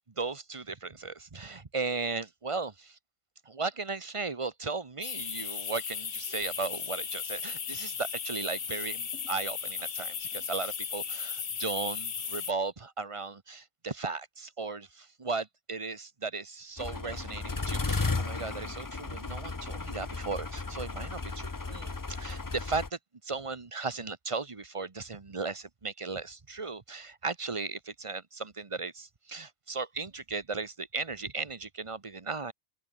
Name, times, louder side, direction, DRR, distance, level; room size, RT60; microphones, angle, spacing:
voice 1, 0.0-3.0 3.5-23.0 23.3-32.5, right 4 dB, 30° right, 1.1 m, -36 dB
sound 1, 5.0-12.5, left 7 dB, 75° left, 1.7 m, -36 dB
sound 2, 16.8-22.9, left 3 dB, 20° left, 0.6 m, -34 dB
open air
omnidirectional pair, 1.2 m